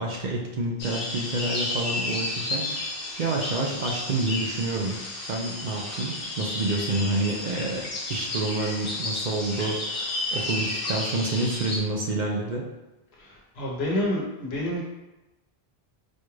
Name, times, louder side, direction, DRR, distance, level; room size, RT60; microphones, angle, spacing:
voice 1, 0.0-5.0 5.2-12.7, right 2 dB, 55° right, -1 dB, 0.6 m, -28 dB
sound 1, 0.8-11.8, left 2 dB, 65° left, 1.2 m, -32 dB
voice 2, 13.2-14.8, left 1 dB, 85° left, -4 dB, 1.2 m, -28 dB
4.3 x 2.3 x 3.1 m, 1.0 s
omnidirectional pair, 1.0 m